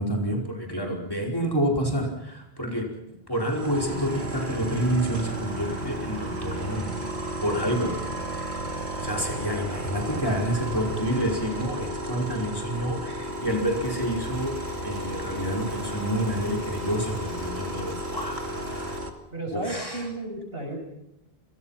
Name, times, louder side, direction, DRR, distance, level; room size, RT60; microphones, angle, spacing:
voice 1, 0.0-2.9 3.3-6.9 7.4-7.9 9.0-19.0 19.5-20.0, right 1 dB, 20° left, 0 dB, 5.2 m, -28 dB
sound 1, 3.3-19.1, right 1 dB, 90° right, 2.8 m, -34 dB
sound 2, 3.7-19.0, left 1 dB, 60° left, 6.2 m, -40 dB
voice 2, 19.3-20.8, right 2 dB, 65° right, 3 dB, 7.8 m, -33 dB
28.5 x 25.0 x 5.9 m, 0.84 s
omnidirectional pair, 1.1 m